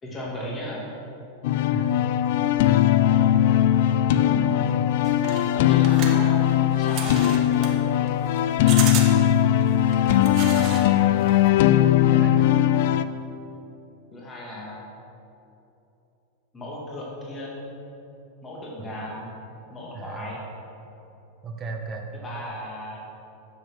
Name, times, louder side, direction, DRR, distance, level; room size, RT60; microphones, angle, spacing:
voice 1, 0.0-0.8 5.5-6.4 6.8-7.7 14.1-14.8 16.5-17.7 18.4-19.3 19.7-20.4 22.2-23.0, left 1 dB, 20° left, -5 dB, 2.3 m, -36 dB
sound 1, 1.4-13.0, left 11 dB, 65° left, 0.4 m, -20 dB
voice 2, 4.2-5.1 8.6-9.3 12.0-12.5 18.8-18.9 19.9-20.3 21.4-22.1, right 4 dB, 25° right, 1 dB, 1.2 m, -37 dB
sound 2, 5.0-10.9 11.2-11.6, right 6 dB, 45° right, 1.6 m, -34 dB
9.6 x 7.0 x 6.3 m, 2.9 s
supercardioid pair, 140°, 0 cm